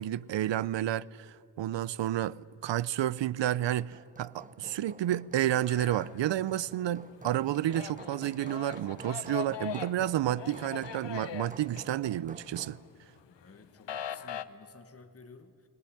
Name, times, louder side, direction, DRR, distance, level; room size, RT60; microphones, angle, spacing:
voice 1, 0.0-12.8, right 12 dB, 85° right, 0.6 m, -31 dB
Hammer, 3.2-12.9, right 2 dB, 20° right, 0.9 m, -49 dB
sound 1, 5.6-6.7 7.1-12.5 12.9-14.4, left 10 dB, 90° left, 0.9 m, -41 dB
voice 2, 13.3-15.7, left 4 dB, 35° left, 1.3 m, -53 dB
19.0 x 19.0 x 9.8 m
wide cardioid pair, 105°, 42 cm